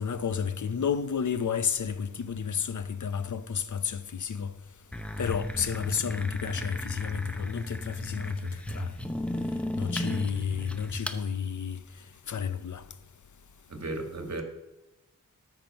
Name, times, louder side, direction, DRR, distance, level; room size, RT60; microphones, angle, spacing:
voice 1, 0.0-4.5 5.2-8.4 8.7-8.9 9.8-11.8 12.3-12.8, left 7 dB, 65° left, 0.7 m, -31 dB
sound 1, 4.9-11.2, left 1 dB, 5° left, 0.7 m, -35 dB
voice 2, 13.7-14.4, right 2 dB, 55° right, 1.7 m, -35 dB
13.5 x 6.0 x 5.4 m
wide cardioid pair, 110°, 33 cm